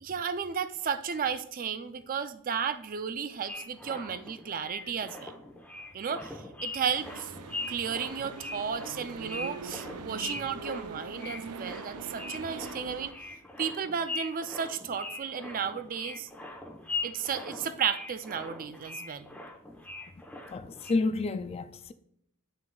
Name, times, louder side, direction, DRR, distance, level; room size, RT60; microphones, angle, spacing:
voice 1, 0.0-5.3 5.9-7.3 7.7-13.1 13.6-16.3 17.0-19.3, right 7 dB, 40° right, 0.4 m, -33 dB
sound 1, 3.5-20.9, left 3 dB, 5° left, 0.9 m, -41 dB
sound 2, 6.9-13.1, right 4 dB, 90° right, 0.6 m, -42 dB
voice 2, 20.5-21.9, left 3 dB, 25° left, 0.3 m, -30 dB
9.1 x 6.2 x 2.3 m
head